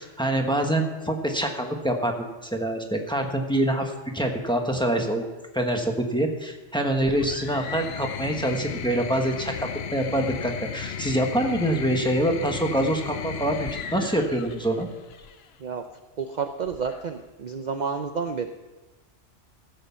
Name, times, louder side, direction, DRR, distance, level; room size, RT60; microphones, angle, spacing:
voice 1, 0.0-2.2 2.4-5.2 5.5-14.9, right 1 dB, 5° left, 3 dB, 1.2 m, -25 dB
sound 1, 7.0-15.5 16.7-17.3, left 7 dB, 60° left, 0.9 m, -35 dB
voice 2, 16.2-18.5, right 5 dB, 45° right, 6 dB, 0.7 m, -30 dB
15.5 x 8.0 x 5.7 m, 1.2 s
omnidirectional pair, 1.3 m